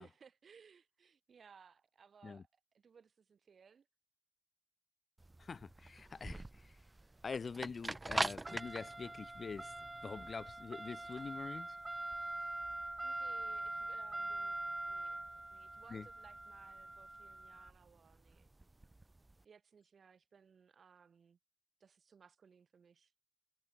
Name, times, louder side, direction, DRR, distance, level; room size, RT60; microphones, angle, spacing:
voice 1, 0.0-2.5 2.7-3.9 13.0-15.2 15.5-18.5 19.4-21.4 21.8-23.1, right 6 dB, 60° right, 4.2 m, -63 dB
sound 1, 5.2-19.3, right 2 dB, 20° right, 0.4 m, -43 dB
voice 2, 5.4-6.8 7.2-9.7 10.0-11.8 15.9-16.1, left 5 dB, 45° left, 0.5 m, -45 dB
wide cardioid pair, 130°, 0 cm